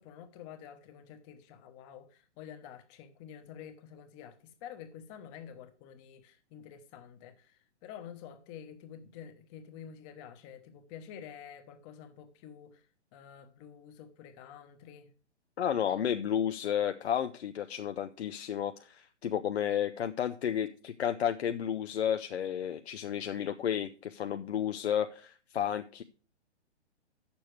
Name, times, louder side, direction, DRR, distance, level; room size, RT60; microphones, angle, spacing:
voice 1, 0.0-12.8 13.1-15.1, left 8 dB, 25° left, 1.0 m, -49 dB
voice 2, 15.6-26.0, left 9 dB, 65° left, 0.6 m, -32 dB
9.0 x 7.0 x 4.6 m
figure-of-eight pair, 125°, 35 cm